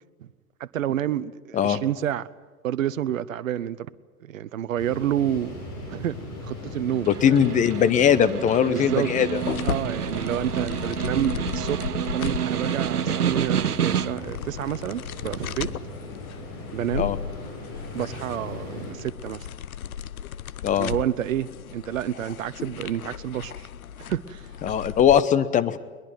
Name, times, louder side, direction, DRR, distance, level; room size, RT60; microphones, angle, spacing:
voice 1, 0.6-2.3 2.6-3.9 4.2-5.6 5.9-6.1 6.4-7.4 8.7-9.1 9.6-15.7 16.7-17.1 17.9-19.5 20.8-23.7 24.0-24.5, right 11 dB, 60° right, 15 dB, 0.9 m, -29 dB
sound 1, 4.8-18.9, left 2 dB, 35° left, 7.0 m, -39 dB
Snare drum, 6.9-14.4, right 8 dB, 80° right, 0.8 m, -28 dB
voice 2, 7.1-9.4 16.9-17.2 20.6-20.9 24.6-25.8, left 9 dB, 15° left, 13 dB, 0.9 m, -20 dB
sound 2, 9.4-25.2, left 9 dB, 65° left, 0.9 m, -36 dB
22.0 x 20.5 x 9.3 m, 1.4 s
figure-of-eight pair, 100°, 45 cm